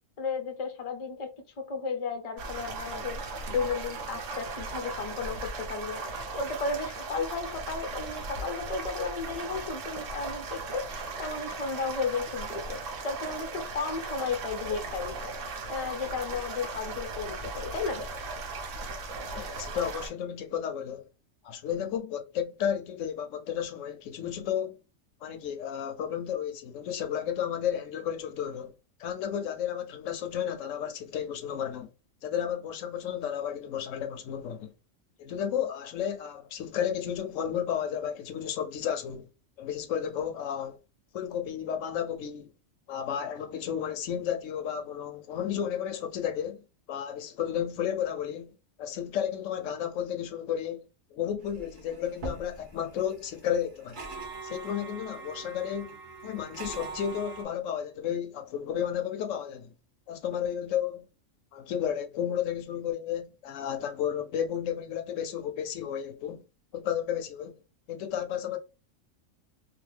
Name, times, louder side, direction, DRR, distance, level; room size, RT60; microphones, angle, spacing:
voice 1, 0.2-3.2 3.5-12.8 13.0-15.3 15.7-18.0, left 4 dB, 45° left, 0.5 m, -34 dB
sound 1, 2.4-20.1, right 3 dB, 70° right, 1.0 m, -37 dB
voice 2, 19.3-21.1 21.4-24.8 25.2-28.7 29.0-31.9 32.2-34.7 35.2-39.3 39.6-40.8 41.1-42.5 42.9-54.0 54.4-56.0 56.2-59.7 60.1-61.1 61.5-66.4 66.7-67.6 67.9-68.6, left 9 dB, 75° left, 0.9 m, -32 dB
sound 2, 51.4-57.4, right 3 dB, 45° right, 0.9 m, -42 dB
2.8 x 2.2 x 3.2 m
omnidirectional pair, 1.4 m